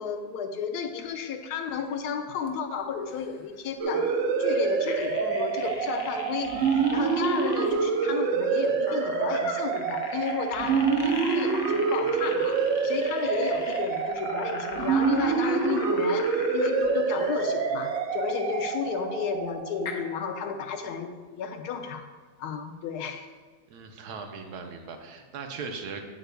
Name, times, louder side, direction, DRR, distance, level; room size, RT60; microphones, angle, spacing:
voice 1, 0.0-22.1 22.4-23.3, left 6 dB, 85° left, 7 dB, 1.2 m, -33 dB
sound 1, 1.8-2.0 2.4-2.5 3.1-3.4 4.9-7.8 8.9-16.9 19.0-19.1 19.9-20.0, left 5 dB, 65° left, 1.0 m, -40 dB
sound 2, 3.8-20.2, right 5 dB, 65° right, 0.8 m, -27 dB
voice 2, 23.7-26.1, right 5 dB, 85° right, 4 dB, 1.3 m, -39 dB
8.0 x 7.8 x 2.3 m, 1.5 s
omnidirectional pair, 1.6 m